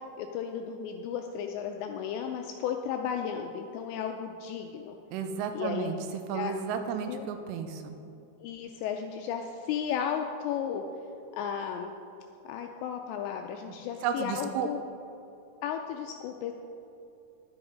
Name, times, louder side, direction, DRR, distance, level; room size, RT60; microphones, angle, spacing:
voice 1, 0.2-5.0 5.5-5.9 6.3-6.6 7.1-7.3 8.4-10.8 11.3-12.0 12.5-14.8 15.6-16.5, left 8 dB, 85° left, 4 dB, 2.5 m, -34 dB
voice 2, 5.1-5.9 6.3-8.0 13.7-13.8 14.0-14.7, right 7 dB, 85° right, 7 dB, 3.3 m, -33 dB
11.0 x 11.0 x 5.1 m, 2.7 s
omnidirectional pair, 5.6 m